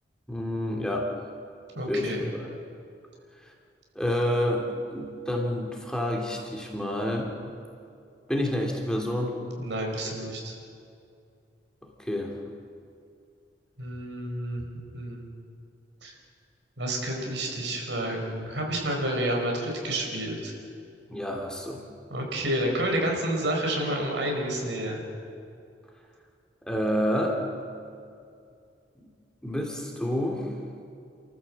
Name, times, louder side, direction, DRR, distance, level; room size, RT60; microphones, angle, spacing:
voice 1, 0.3-1.1 1.9-2.1 2.4-2.5 3.9-7.3 8.3-9.4 12.0-12.3 21.1-21.8 26.7-27.4 29.0-29.1 29.4-30.5, left 1 dB, 5° left, 0 dB, 2.7 m, -28 dB
voice 2, 1.8-2.2 9.6-10.5 13.8-14.6 14.9-15.3 16.0-16.1 16.8-20.5 22.1-25.0, right 1 dB, 80° right, 1 dB, 5.2 m, -29 dB
29.5 x 14.0 x 7.5 m, 2.4 s
head